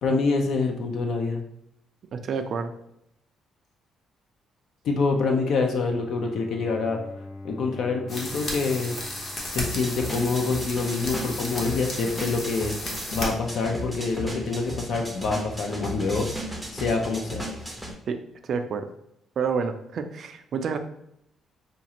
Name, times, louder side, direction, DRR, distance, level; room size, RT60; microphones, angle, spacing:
voice 1, 0.0-1.4 4.8-7.0 7.4-8.9 9.5-12.7 13.1-16.3 16.7-17.4, left 4 dB, 60° left, 2 dB, 0.5 m, -26 dB
voice 2, 2.1-2.7 18.1-18.2 18.4-18.9 19.4-20.8, right 6 dB, 45° right, 7 dB, 0.4 m, -28 dB
Bowed string instrument, 5.5-10.5, left 2 dB, 85° left, 1.3 m, -44 dB
sound 1, 8.1-13.3, left 1 dB, 35° left, 0.8 m, -34 dB
sound 2, 9.6-17.9, equal, 5° left, 0.6 m, -35 dB
5.0 x 2.4 x 2.9 m, 0.76 s
cardioid pair, 165°, 0 cm